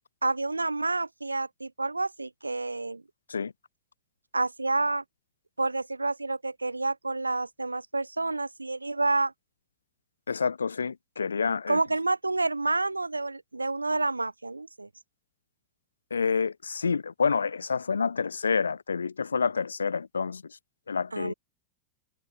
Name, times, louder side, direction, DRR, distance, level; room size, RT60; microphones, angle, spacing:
voice 1, 0.2-3.0 4.3-5.0 5.6-9.3 11.7-14.9 21.1-21.3, right 3 dB, 80° right, 0.4 m, -29 dB
voice 2, 10.3-11.8 16.1-20.6 20.9-21.3, left 5 dB, 75° left, 0.9 m, -28 dB
figure-of-eight pair, 90°, 0 cm